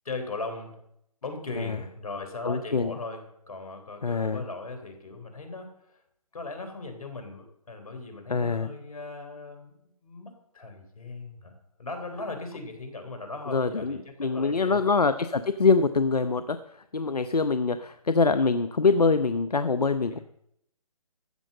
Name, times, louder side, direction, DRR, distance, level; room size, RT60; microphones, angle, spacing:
voice 1, 0.1-0.8 1.2-5.7 6.3-9.7 10.0-14.8 20.1-20.2, left 3 dB, 70° left, 6 dB, 3.6 m, -38 dB
voice 2, 2.4-3.0 4.0-4.4 8.3-8.7 13.5-20.2, left 4 dB, 90° left, 11 dB, 0.7 m, -24 dB
13.5 x 7.5 x 7.6 m, 0.76 s
figure-of-eight pair, 145°, 19 cm